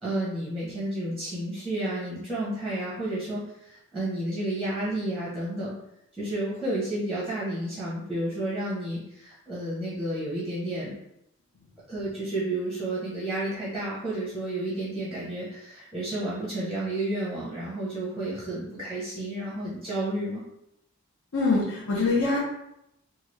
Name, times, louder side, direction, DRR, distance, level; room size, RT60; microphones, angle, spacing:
voice 1, 0.0-5.7 6.1-11.0 11.9-20.4, right 1 dB, ahead, -9 dB, 0.7 m, -31 dB
voice 2, 21.3-22.4, left 3 dB, 75° left, -6 dB, 0.7 m, -24 dB
3.1 x 2.3 x 3.0 m, 0.82 s
head